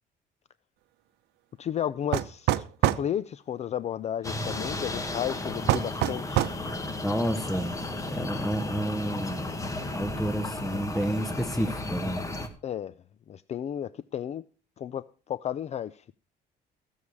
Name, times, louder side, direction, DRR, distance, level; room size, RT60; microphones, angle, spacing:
voice 1, 1.6-2.6 2.9-6.7 12.6-12.9 13.3-14.4 14.8-16.2, left 10 dB, 40° left, 0.4 m, -33 dB
sound 1, 2.1-3.1 5.7-6.6, right 13 dB, 80° right, 0.7 m, -25 dB
sound 2, 4.2-12.5, left 2 dB, 20° left, 1.8 m, -34 dB
voice 2, 7.0-7.8 8.1-9.5 9.9-12.2, equal, ahead, 0.8 m, -30 dB
15.5 x 7.2 x 4.7 m
cardioid pair, 110°, 17 cm